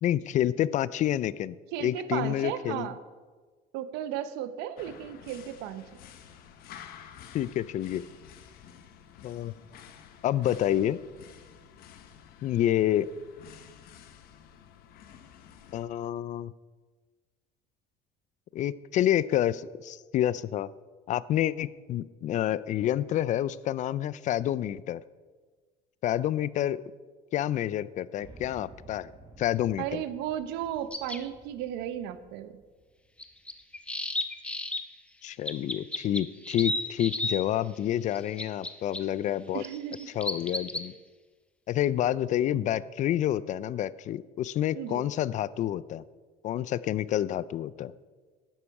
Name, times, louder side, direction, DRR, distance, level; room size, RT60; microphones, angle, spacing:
voice 1, 0.0-2.9 7.3-8.0 9.2-9.5 10.2-11.0 12.4-13.1 15.7-16.5 18.5-20.7 21.1-25.0 26.0-26.8 27.3-29.1 29.4-30.0 35.2-39.6 40.1-40.9 41.7-46.0 46.4-47.9, left 12 dB, 45° left, 19 dB, 0.4 m, -28 dB
voice 2, 1.7-3.0 3.7-5.8 29.8-32.5 39.5-40.1 44.7-45.0, right 11 dB, 75° right, 12 dB, 0.9 m, -34 dB
sound 1, 4.8-15.9, left 9 dB, 60° left, 1.1 m, -51 dB
sound 2, 28.2-34.3, right 2 dB, 25° right, 2.5 m, -54 dB
sound 3, 30.9-31.2 33.2-34.8 35.5-37.4 38.1-39.0 39.6-40.9, left 1 dB, 5° left, 0.8 m, -32 dB
12.0 x 10.0 x 4.7 m, 1.4 s
cardioid pair, 120°, 17 cm